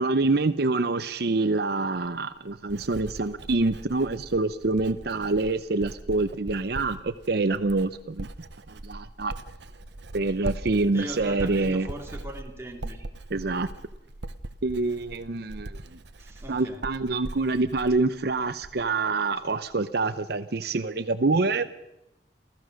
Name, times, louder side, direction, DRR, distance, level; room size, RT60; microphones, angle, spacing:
voice 1, 0.0-8.3 8.7-9.3 10.1-11.9 13.3-13.7 14.6-16.0 16.5-21.7, right 3 dB, 65° right, 0.7 m, -26 dB
Writing, 2.0-19.0 19.3-19.7, right 1 dB, 80° right, 1.0 m, -41 dB
voice 2, 10.9-13.1 16.2-16.9, equal, 15° right, 2.5 m, -39 dB
28.0 x 15.0 x 6.4 m
head